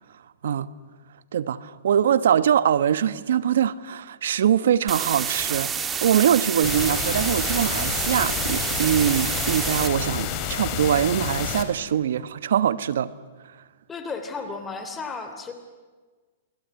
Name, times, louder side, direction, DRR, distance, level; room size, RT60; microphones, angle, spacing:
voice 1, 1.3-5.7 6.0-13.1, right 9 dB, 75° right, 1.2 m, -23 dB
sound 1, 4.9-9.9, right 7 dB, 20° right, 1.8 m, -28 dB
sound 2, 6.6-11.6, left 8 dB, 35° left, 3.3 m, -29 dB
voice 2, 13.9-15.5, left 4 dB, 15° left, 3.0 m, -33 dB
29.0 x 20.0 x 9.5 m
hypercardioid pair, 140°, 0 cm